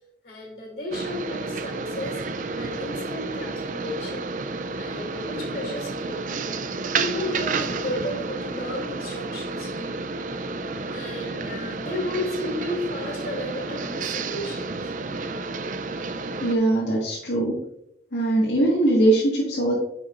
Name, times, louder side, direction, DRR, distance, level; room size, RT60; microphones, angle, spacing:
voice 1, 0.2-2.2 2.6-4.3 4.8-6.4 6.9-10.0 10.9-14.9, left 1 dB, 55° left, 0 dB, 2.9 m, -33 dB
sound 1, 0.9-16.6, right 3 dB, 45° right, 0.4 m, -31 dB
voice 2, 16.4-17.6 18.1-19.7, right 1 dB, 75° left, -6 dB, 1.8 m, -21 dB
9.5 x 6.0 x 2.5 m, 0.80 s
head